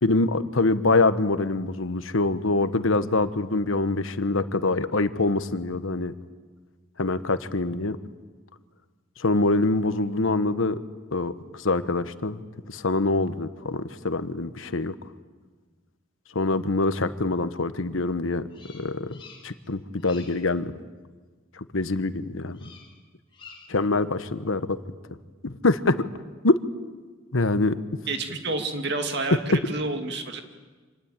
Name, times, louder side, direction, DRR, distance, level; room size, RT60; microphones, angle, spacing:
voice 1, 0.0-6.1 7.0-8.0 9.2-10.8 11.1-12.4 12.7-14.9 16.3-18.4 18.7-19.2 19.4-20.7 21.7-22.7 23.7-24.8 25.4-26.0 26.4-26.6 27.3-27.8, left 2 dB, 85° left, 12 dB, 1.1 m, -24 dB
Bird vocalization bird call bird song, 18.5-19.7 20.0-20.5 22.5-23.0 23.3-23.8, left 5 dB, 25° left, 3.9 m, -49 dB
voice 2, 28.1-30.4, right 3 dB, 55° right, 5 dB, 2.3 m, -29 dB
26.0 x 19.5 x 9.0 m, 1.4 s
head